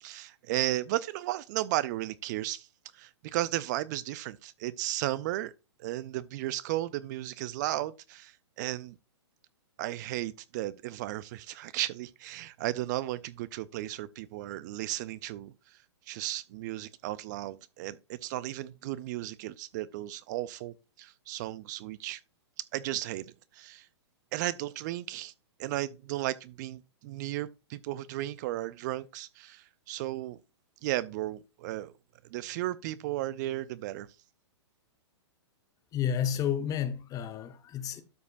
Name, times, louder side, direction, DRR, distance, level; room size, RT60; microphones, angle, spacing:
voice 1, 0.0-2.7 2.9-5.5 5.8-9.0 9.8-15.8 16.1-22.2 22.6-23.3 23.5-23.9 24.3-25.3 25.6-30.4 30.8-31.9 32.3-34.1, right 15 dB, 40° right, 0.4 m, -34 dB
voice 2, 35.9-38.0, left 9 dB, 25° left, 1.0 m, -31 dB
12.5 x 5.0 x 2.5 m
hypercardioid pair, 120°, 15 cm